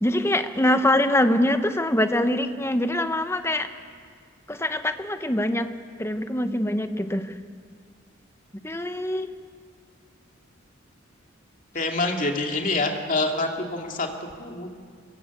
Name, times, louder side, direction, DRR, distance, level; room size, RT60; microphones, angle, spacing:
voice 1, 0.0-3.7 4.5-5.7 6.0-7.3 8.6-9.3, left 1 dB, 10° left, 8 dB, 1.0 m, -24 dB
voice 2, 11.7-14.7, left 2 dB, 40° left, 2 dB, 2.5 m, -26 dB
23.5 x 22.5 x 8.4 m, 2.1 s
head